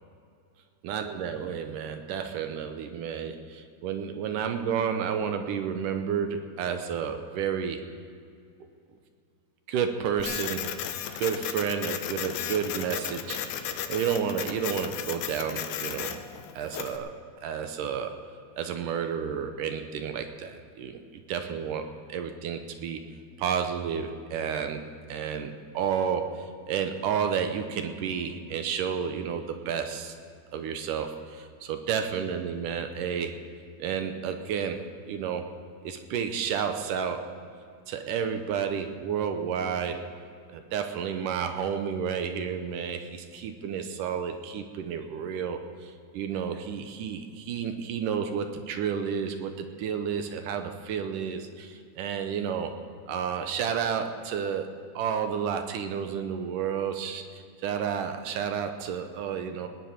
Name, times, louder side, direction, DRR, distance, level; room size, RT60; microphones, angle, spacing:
voice 1, 0.8-7.9 9.7-16.2 16.5-17.1 17.4-18.2 18.6-23.0 23.4-30.2 30.5-33.4 33.8-35.6 35.8-37.5 37.9-40.1 40.5-52.7 53.1-57.3 57.6-59.7, right 7 dB, 75° right, 7 dB, 2.2 m, -31 dB
Printer, 10.2-17.0, left 9 dB, 75° left, 1.9 m, -35 dB
19.0 x 9.9 x 5.9 m, 2.3 s
omnidirectional pair, 4.3 m